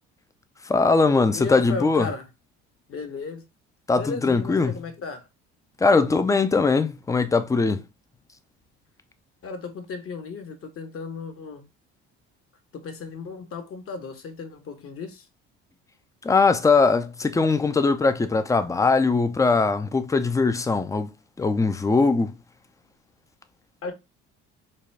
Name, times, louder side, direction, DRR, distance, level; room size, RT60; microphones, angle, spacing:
voice 1, 0.7-2.1 3.9-4.8 5.8-7.8 16.2-21.1 21.4-22.3, left 4 dB, 10° left, 0.4 m, -21 dB
voice 2, 1.3-2.3 2.9-3.4 3.9-5.3 9.4-11.7 12.7-15.3 23.8-23.9, left 4 dB, 50° left, 1.1 m, -35 dB
4.1 x 2.3 x 3.2 m
supercardioid pair, 80°, 30 cm